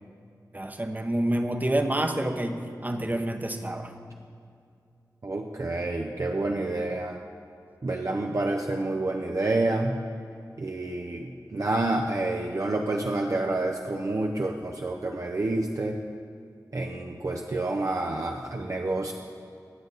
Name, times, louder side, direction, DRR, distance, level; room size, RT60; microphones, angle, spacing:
voice 1, 0.5-3.9, right 1 dB, 25° right, 6 dB, 0.9 m, -28 dB
voice 2, 5.2-7.2 7.8-10.0 10.6-16.0 16.7-19.1, right 2 dB, 50° right, 1 dB, 0.7 m, -28 dB
19.0 x 6.9 x 4.1 m, 2.4 s
wide cardioid pair, 55°, 7 cm